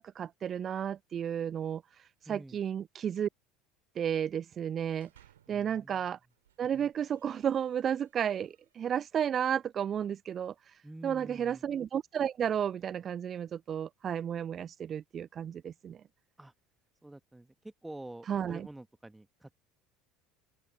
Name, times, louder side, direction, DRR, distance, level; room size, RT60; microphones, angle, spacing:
voice 1, 0.0-1.8 2.3-3.3 4.0-5.1 5.5-6.2 6.6-10.5 11.0-16.0 18.3-18.7, right 8 dB, 35° right, 0.3 m, -32 dB
voice 2, 2.2-2.6 5.5-6.1 10.8-11.7 16.4-16.5 17.0-19.5, right 1 dB, 5° right, 1.3 m, -48 dB
sound 1, 4.8-5.7 6.2-9.1, right 11 dB, 70° right, 2.2 m, -67 dB
open air
figure-of-eight pair, 70°, 0 cm